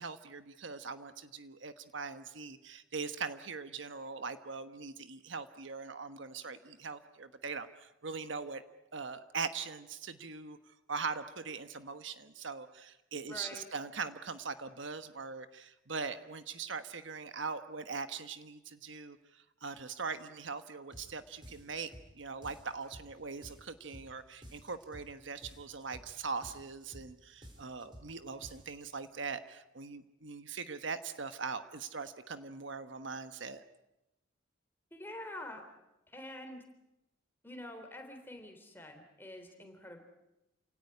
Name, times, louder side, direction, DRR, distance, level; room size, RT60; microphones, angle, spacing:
voice 1, 0.0-8.6 8.9-10.6 10.9-21.9 22.2-33.6, right 5 dB, 65° right, 10 dB, 1.2 m, -41 dB
voice 2, 13.3-13.7 34.9-35.6 36.1-36.6 37.4-40.0, left 1 dB, 10° left, 4 dB, 3.5 m, -46 dB
sound 1, 20.9-21.1 21.4-22.1 22.4-23.1 23.4-24.1 24.4-25.1 25.4-26.1 26.4-27.1 27.4-28.1 28.4-28.9, equal, 25° right, 5.1 m, -52 dB
28.5 x 17.5 x 9.9 m, 0.94 s
head